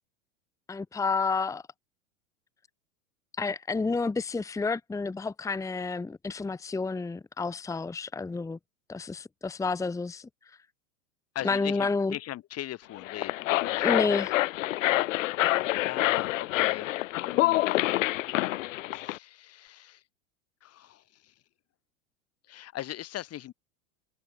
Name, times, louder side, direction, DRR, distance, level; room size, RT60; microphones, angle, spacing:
voice 1, 0.7-1.6 3.4-8.6 8.9-10.3 11.4-12.2 13.8-14.3, left 4 dB, 10° left, 1.0 m, -30 dB
voice 2, 11.4-14.0 15.3-15.4 15.8-16.9 17.2-17.6 18.9-20.0 20.6-21.0 22.5-23.5, left 13 dB, 35° left, 3.4 m, -39 dB
sound 1, 13.0-19.2, left 17 dB, 65° left, 1.8 m, -27 dB
hypercardioid pair, 95°, 41 cm